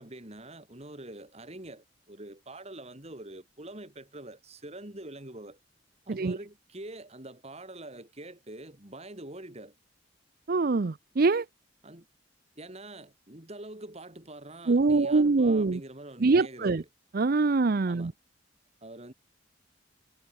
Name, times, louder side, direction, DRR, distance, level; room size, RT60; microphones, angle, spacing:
voice 1, 0.0-5.6 6.1-9.7 11.8-12.1 12.6-16.8 17.9-18.1 18.8-19.1, right 1 dB, 35° right, 3.3 m, -45 dB
voice 2, 10.5-11.5 14.7-15.8 16.2-16.8 17.1-18.1, right 3 dB, 50° right, 0.5 m, -24 dB
head